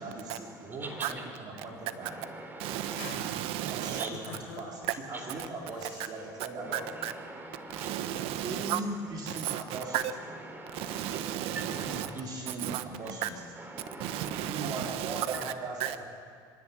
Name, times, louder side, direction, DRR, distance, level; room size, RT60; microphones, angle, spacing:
voice 1, 0.0-2.2 3.7-6.8 8.4-10.1 11.7-13.4 14.4-16.0, right 2 dB, 45° right, 4.0 m, -39 dB
voice 2, 0.8-1.4 2.0-3.1 4.0-4.1 5.1-5.4 6.6-7.9 9.7-12.2 13.6-14.4 15.3-15.6, right 2 dB, 20° right, 4.2 m, -43 dB
sound 1, 1.7-2.2 2.6-3.4 4.1-4.7 5.7-6.2, left 7 dB, 80° left, 3.6 m, -46 dB
voice 3, 2.6-4.0 7.0-7.1 7.9-8.8 9.5-9.6 9.9-10.0 11.0-12.1 12.6-12.8 14.0-15.3 15.8-15.9, right 13 dB, 70° right, 1.2 m, -33 dB
25.0 x 11.0 x 9.6 m
supercardioid pair, 90°, 10 cm